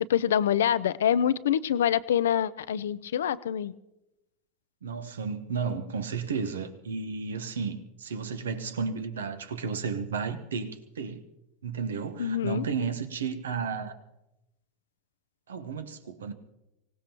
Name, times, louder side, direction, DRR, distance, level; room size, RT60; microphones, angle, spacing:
voice 1, 0.1-3.7 12.2-12.6, left 9 dB, 80° left, 0.5 m, -25 dB
voice 2, 4.8-11.2 11.6-13.9 15.5-16.3, right 5 dB, 85° right, 1.1 m, -33 dB
24.5 x 17.5 x 2.9 m
hypercardioid pair, 95°, 0 cm